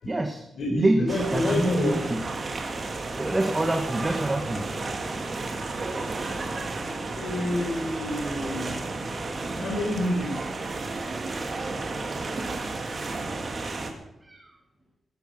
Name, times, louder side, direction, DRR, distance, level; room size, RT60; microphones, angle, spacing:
voice 1, 0.0-0.4 0.7-2.2 3.1-4.6 12.1-12.2 12.8-13.1 14.2-14.5, right 2 dB, 15° right, 4 dB, 1.3 m, -27 dB
voice 2, 0.5-2.0 7.2-8.8 9.5-10.4, left 1 dB, 70° left, -2 dB, 4.6 m, -28 dB
sound 1, 1.1-13.9, right 3 dB, 35° right, 2.6 m, -32 dB
17.0 x 14.0 x 6.0 m, 0.88 s
wide cardioid pair, 175°, 0 cm